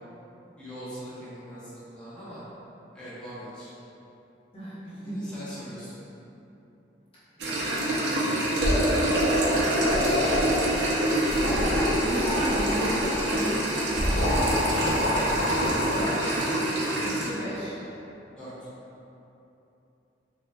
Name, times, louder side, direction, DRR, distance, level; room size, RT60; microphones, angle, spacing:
voice 1, 0.6-2.4 2.9-3.7 5.0-6.0 15.8-16.1 18.4-18.7, equal, 5° left, -13 dB, 1.0 m, -42 dB
voice 2, 4.5-5.3 7.4-8.2 8.7-9.5 11.3-14.9 15.8-16.3 16.7-17.8, equal, 30° left, -12 dB, 0.9 m, -35 dB
sound 1, 7.4-17.3, right 1 dB, 75° right, 0.6 m, -26 dB
sound 2, 8.6-10.9 11.2-13.3 13.9-16.2, equal, 85° left, 0.6 m, -27 dB
5.1 x 3.0 x 2.3 m, 3.0 s
head